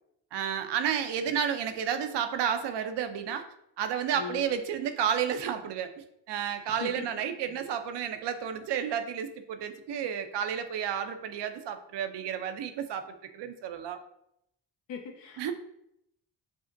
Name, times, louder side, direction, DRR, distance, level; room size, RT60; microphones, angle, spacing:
voice 1, 0.3-3.5 3.8-14.0 15.4-15.5, right 8 dB, 70° right, 8 dB, 0.6 m, -31 dB
voice 2, 14.9-15.5, left 7 dB, 75° left, 2 dB, 0.8 m, -39 dB
5.1 x 2.1 x 2.5 m, 0.77 s
supercardioid pair, 55°, 44 cm